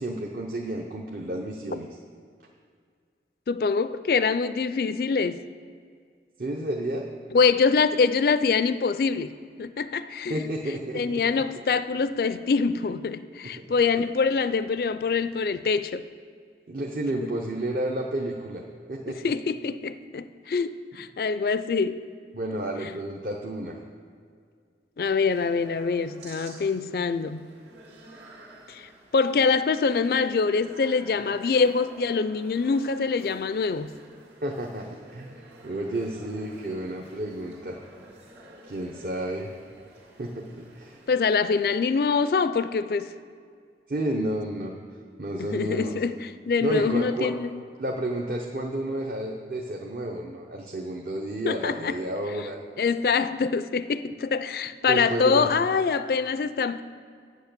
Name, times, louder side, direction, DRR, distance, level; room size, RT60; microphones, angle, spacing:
voice 1, 0.0-1.9 6.4-7.1 10.3-11.2 13.4-13.5 16.7-18.6 18.9-19.3 22.3-23.8 34.4-37.8 38.6-39.5 40.2-41.0 43.9-44.7 45.2-46.0 46.6-47.3 47.8-52.6 54.9-55.5, right 1 dB, 50° right, 0.7 m, -31 dB
voice 2, 3.5-5.4 7.3-10.4 10.9-16.1 19.2-22.0 25.0-27.5 28.7-33.9 41.1-43.1 45.3-47.6 51.5-52.0 52.8-56.8, left 5 dB, 55° left, 0.3 m, -25 dB
sound 1, 25.0-41.6, right 1 dB, 80° right, 2.5 m, -50 dB
8.6 x 8.2 x 6.7 m
head